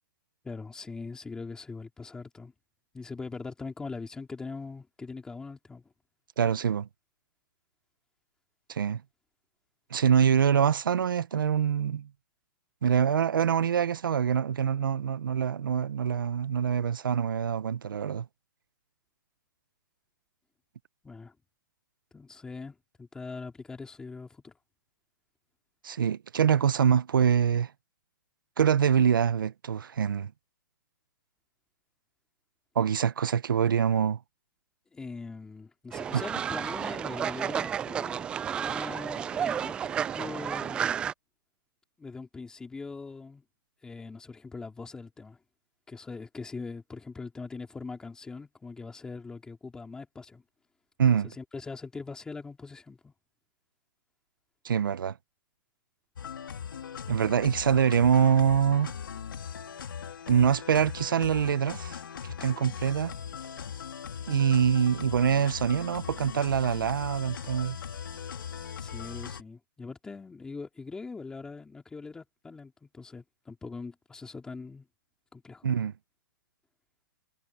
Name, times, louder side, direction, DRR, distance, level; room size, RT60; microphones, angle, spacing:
voice 1, 0.4-2.5 2.9-5.9 21.0-21.3 22.1-24.6 34.9-41.0 42.0-43.4 43.8-45.4 45.9-50.4 51.2-53.1 68.8-74.9 75.3-75.7, left 4 dB, 5° left, 3.7 m, -42 dB
voice 2, 6.4-6.9 8.7-9.0 9.9-12.1 12.8-18.3 25.8-27.7 28.6-30.3 32.7-34.2 36.1-36.2 51.0-51.3 54.6-55.2 57.1-58.9 60.3-62.0 62.2-63.1 64.3-67.8 75.6-75.9, right 8 dB, 85° right, 1.0 m, -25 dB
Fowl, 35.9-41.1, right 8 dB, 10° right, 0.3 m, -32 dB
sound 1, 56.1-69.4, left 7 dB, 85° left, 2.5 m, -39 dB
hypercardioid pair, 160°, 11 cm